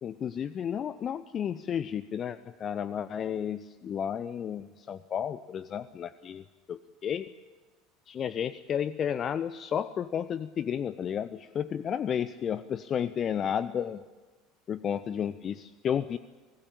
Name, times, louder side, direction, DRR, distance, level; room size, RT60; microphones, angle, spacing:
voice 1, 0.0-7.3 8.1-14.0 14.7-16.2, left 8 dB, 35° left, 16 dB, 0.7 m, -32 dB
24.5 x 18.0 x 8.8 m, 1.3 s
figure-of-eight pair, 70°, 0 cm